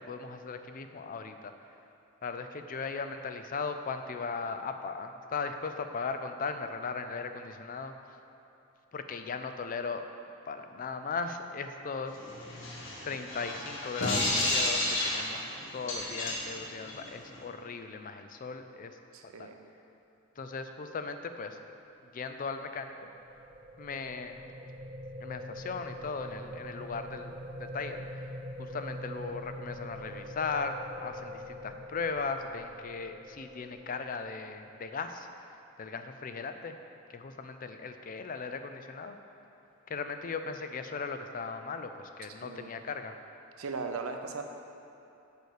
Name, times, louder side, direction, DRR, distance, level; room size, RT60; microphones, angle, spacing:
voice 1, 0.0-1.5 2.2-7.9 8.9-10.1 10.5-12.2 12.4-12.7 13.0-19.0 19.4-19.5 20.4-21.6 22.1-22.9 23.8-24.4 25.2-28.3 28.6-35.3 35.8-36.8 37.1-39.2 39.9-43.1, left 4 dB, 40° left, 8 dB, 0.4 m, -37 dB
sound 1, 12.1-17.4, left 1 dB, 60° left, 1.3 m, -32 dB
voice 2, 19.1-19.6 42.4-42.7 43.6-44.4, right 4 dB, 85° right, 5 dB, 0.6 m, -38 dB
sound 2, 22.7-34.8, equal, 25° right, 0.5 m, -44 dB
6.7 x 4.7 x 6.5 m, 3.0 s
head